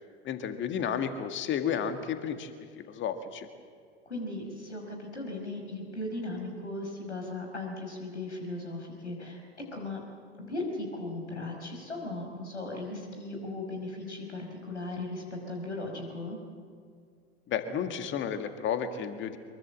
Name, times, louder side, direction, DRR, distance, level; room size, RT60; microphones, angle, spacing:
voice 1, 0.2-2.5 2.9-3.5 17.5-19.4, left 8 dB, 35° left, 8 dB, 2.0 m, -32 dB
voice 2, 4.1-9.4 9.7-10.0 10.4-16.4, left 2 dB, 85° left, 2 dB, 5.3 m, -37 dB
23.5 x 23.0 x 7.7 m, 2.1 s
figure-of-eight pair, 80°, 34 cm